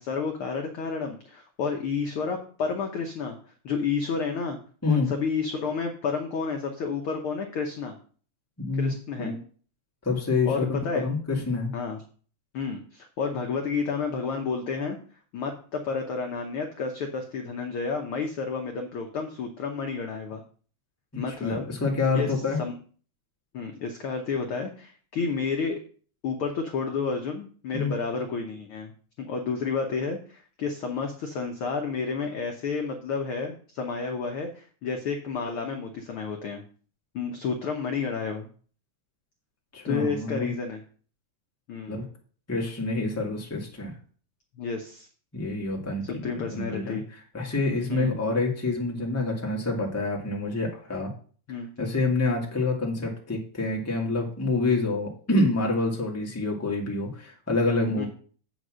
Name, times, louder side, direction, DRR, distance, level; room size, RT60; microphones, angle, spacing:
voice 1, 0.0-3.4 3.6-4.6 4.8-7.9 8.8-9.3 10.5-11.0 11.7-12.0 12.5-15.0 15.3-20.4 21.2-21.7 22.1-22.3 22.6-22.7 23.5-25.8 26.2-28.9 29.2-36.6 37.1-38.5 39.8-40.8 41.7-42.0 44.6-45.1 46.0-47.0 47.9-48.2 51.5-51.7 58.0-58.1, left 5 dB, 70° left, 4 dB, 1.3 m, -30 dB
voice 2, 4.8-5.1 8.6-8.9 9.2-9.4 10.0-11.7 21.4-22.6 27.7-27.9 39.7-40.5 41.9-42.0 42.5-43.9 45.3-47.0 47.3-51.1 51.8-58.1, left 3 dB, 10° left, -1 dB, 1.1 m, -27 dB
8.1 x 5.2 x 6.2 m, 0.44 s
omnidirectional pair, 3.5 m